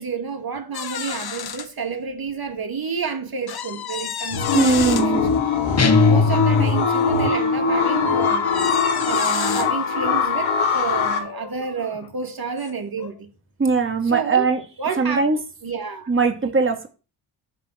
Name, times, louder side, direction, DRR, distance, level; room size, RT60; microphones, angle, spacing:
voice 1, 0.0-5.3 6.0-8.4 9.0-13.3 14.0-14.5 14.8-15.2 15.6-16.1 16.4-16.5, right 5 dB, 45° right, 2.2 m, -30 dB
sound 1, 0.7-1.7 2.3-2.4 3.5-5.1 6.5-7.3 8.0-9.7 10.7-12.1 12.6-12.7 13.0-13.2, left 9 dB, 50° left, 1.1 m, -32 dB
sound 2, 4.3-11.2, left 5 dB, 70° left, 2.1 m, -21 dB
voice 2, 4.5-5.2 13.6-14.6 15.0-15.4 16.1-16.9, right 4 dB, 25° right, 2.3 m, -20 dB
sound 3, 5.8-7.1, left 2 dB, 30° left, 1.7 m, -19 dB
9.9 x 3.8 x 6.3 m
hypercardioid pair, 45°, 49 cm